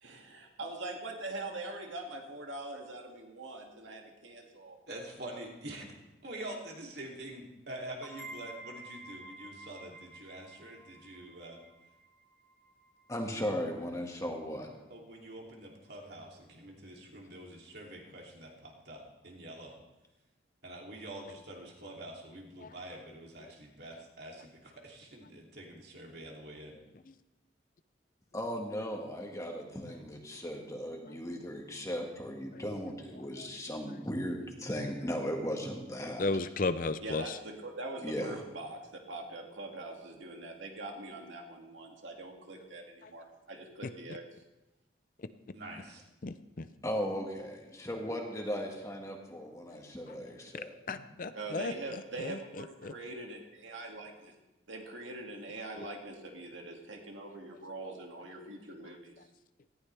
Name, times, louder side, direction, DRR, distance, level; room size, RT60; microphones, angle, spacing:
voice 1, 0.0-4.8 37.0-44.2 51.3-54.3 54.7-59.1, right 2 dB, 90° right, 1 dB, 2.3 m, -43 dB
voice 2, 4.9-5.8 6.2-11.6 14.9-19.8 20.6-26.8 45.5-46.0, right 1 dB, 60° right, -1 dB, 2.9 m, -46 dB
sound 1, 8.0-13.4, right 1 dB, 5° right, 2.3 m, -51 dB
voice 3, 13.1-14.7 28.3-36.2 38.0-38.4 46.8-50.7, equal, 15° left, 1 dB, 1.8 m, -37 dB
voice 4, 33.2-33.5 33.9-34.0 36.2-37.4 46.2-46.7 49.7-49.8 50.1-50.2 50.9-52.9 57.3-57.6, left 3 dB, 45° left, 12 dB, 0.5 m, -36 dB
18.5 x 14.5 x 3.4 m, 1.0 s
head